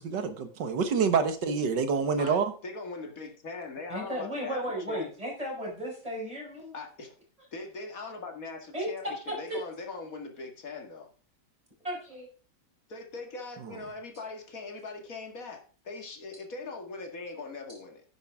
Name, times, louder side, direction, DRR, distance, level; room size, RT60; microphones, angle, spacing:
voice 1, 0.0-2.5, right 5 dB, 70° right, 9 dB, 1.9 m, -27 dB
voice 2, 2.2-5.1 6.7-7.2 7.5-11.1 12.9-18.0, left 3 dB, 50° left, 3 dB, 2.4 m, -41 dB
voice 3, 3.9-6.8 8.7-9.6 11.8-12.3, equal, 20° right, -3 dB, 5.6 m, -34 dB
10.0 x 10.0 x 3.6 m, 0.40 s
omnidirectional pair, 2.0 m